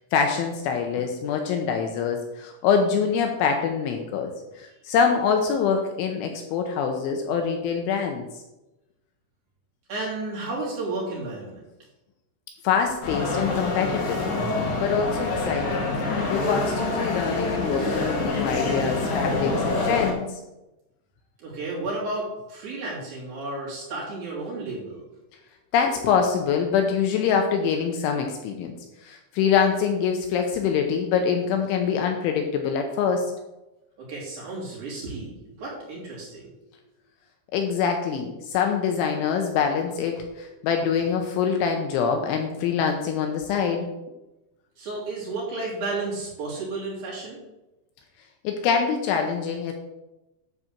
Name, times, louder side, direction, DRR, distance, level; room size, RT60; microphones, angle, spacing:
voice 1, 0.1-8.3 12.6-14.2 14.8-15.9 16.3-20.4 25.7-28.7 29.0-33.3 37.5-43.9 48.4-49.7, left 6 dB, 80° left, 4 dB, 3.0 m, -24 dB
voice 2, 9.9-11.6 21.4-25.0 34.0-36.5 44.8-47.4, right 2 dB, 50° right, -5 dB, 4.2 m, -32 dB
sound 1, 13.0-20.1, left 2 dB, 55° left, 3.5 m, -26 dB
11.0 x 4.1 x 7.2 m, 0.98 s
omnidirectional pair, 6.0 m